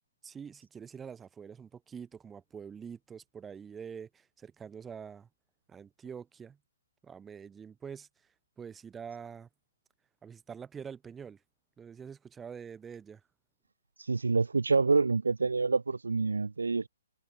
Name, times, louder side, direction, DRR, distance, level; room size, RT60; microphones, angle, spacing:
voice 1, 0.2-5.3 5.7-6.6 7.0-8.1 8.6-9.5 10.2-11.4 11.8-13.2, right 7 dB, 10° right, 4.3 m, -45 dB
voice 2, 14.0-16.9, right 4 dB, 80° right, 1.0 m, -27 dB
figure-of-eight pair, 130°, 0 cm